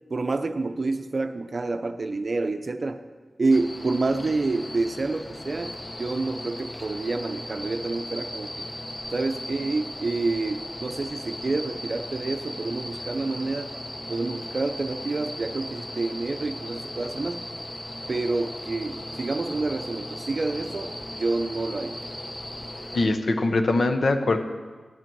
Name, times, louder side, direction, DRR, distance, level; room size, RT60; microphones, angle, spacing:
voice 1, 0.1-3.0 3.4-8.7 9.1-13.7 14.1-17.4 18.1-22.0, right 3 dB, 45° right, 9 dB, 0.6 m, -28 dB
sound 1, 3.5-23.1, left 1 dB, 25° left, 0.9 m, -37 dB
voice 2, 22.9-24.4, left 2 dB, 65° left, 7 dB, 0.8 m, -22 dB
12.0 x 8.9 x 4.6 m, 1.4 s
wide cardioid pair, 120°, 0 cm